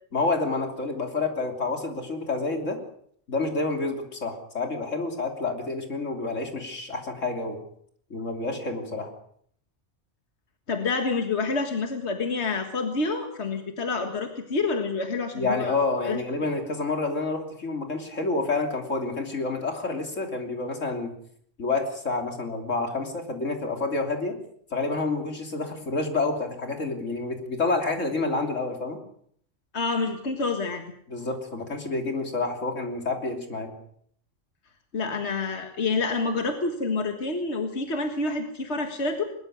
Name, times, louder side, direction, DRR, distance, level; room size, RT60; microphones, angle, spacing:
voice 1, 0.1-2.8 3.3-7.6 8.1-9.1 15.3-21.1 21.6-24.4 24.7-29.0 31.1-33.7, left 3 dB, 80° left, 3 dB, 3.5 m, -28 dB
voice 2, 10.7-15.7 16.1-16.2 29.7-30.8 34.9-39.2, left 3 dB, 60° left, 5 dB, 2.0 m, -28 dB
21.0 x 21.0 x 6.5 m, 0.65 s
omnidirectional pair, 1.3 m